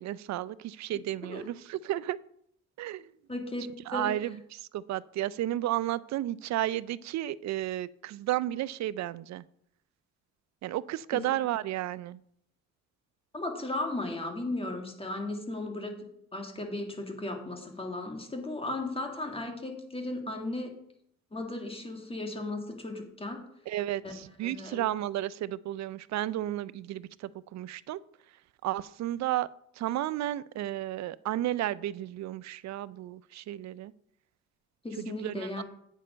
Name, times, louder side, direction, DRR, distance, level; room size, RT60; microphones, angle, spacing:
voice 1, 0.0-2.2 2.8-3.0 3.9-4.4 4.7-9.4 10.6-12.2 23.7-27.1 27.5-28.0 28.6-29.5 29.8-33.9 35.2-35.5, right 13 dB, 65° right, 0.4 m, -32 dB
voice 2, 3.3-3.7 3.9-4.2 11.1-11.4 13.3-16.0 16.3-20.8 21.3-23.4 24.0-24.1 24.4-24.8 34.8-35.6, left 2 dB, 20° left, 2.0 m, -36 dB
8.7 x 6.5 x 5.1 m
cardioid pair, 90°, 30 cm